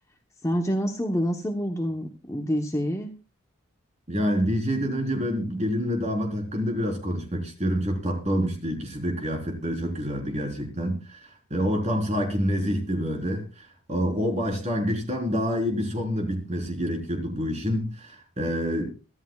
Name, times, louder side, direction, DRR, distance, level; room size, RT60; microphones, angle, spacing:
voice 1, 0.4-3.1, equal, 15° left, 1.0 m, -27 dB
voice 2, 4.1-18.9, equal, 30° right, 4.0 m, -27 dB
23.5 x 13.0 x 2.4 m
head